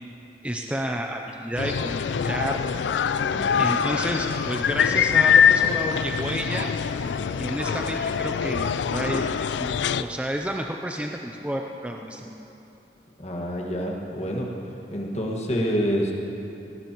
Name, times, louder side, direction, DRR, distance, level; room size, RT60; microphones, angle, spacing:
voice 1, 0.4-2.6 3.6-6.7 7.4-9.3 9.6-9.7 10.0-12.3, right 1 dB, 5° right, 2 dB, 0.5 m, -30 dB
sound 1, 1.6-10.0, left 7 dB, 80° left, 0.4 m, -23 dB
voice 2, 3.2-3.6 13.2-14.5 14.9-16.1, equal, 40° left, -1 dB, 1.7 m, -27 dB
18.0 x 18.0 x 3.0 m, 2.9 s
head